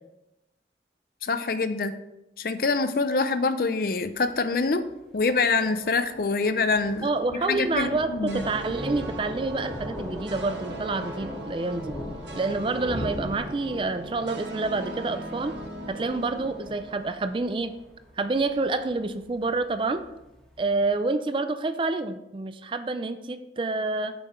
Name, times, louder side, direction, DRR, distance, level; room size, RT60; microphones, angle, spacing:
voice 1, 1.2-1.9 2.4-4.9 5.1-8.4, left 4 dB, 55° left, 11 dB, 0.5 m, -25 dB
Thunder, 4.0-20.9, left 1 dB, 5° left, 1.5 m, -41 dB
voice 2, 7.0-11.9 12.4-15.6 15.9-17.7 18.2-20.0 20.6-24.1, right 3 dB, 30° right, 10 dB, 0.3 m, -28 dB
sound 1, 8.3-17.6, right 1 dB, 85° right, 1.2 m, -39 dB
6.9 x 5.6 x 4.3 m, 0.93 s
head